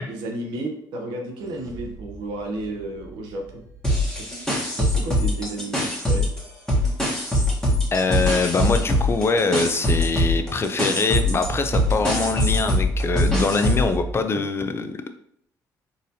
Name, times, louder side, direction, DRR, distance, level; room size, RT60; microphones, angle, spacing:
voice 1, 0.1-3.6 4.4-6.3, right 2 dB, 90° right, 2 dB, 0.7 m, -32 dB
sound 1, 1.4-5.5 8.8-14.1, right 4 dB, 50° right, 0.6 m, -36 dB
sound 2, 3.8-6.4 6.7-13.9, left 1 dB, 10° left, 1.1 m, -22 dB
voice 2, 7.9-14.9, left 4 dB, 35° left, 8 dB, 0.4 m, -23 dB
4.0 x 2.6 x 2.7 m, 0.70 s
cardioid pair, 80°, 8 cm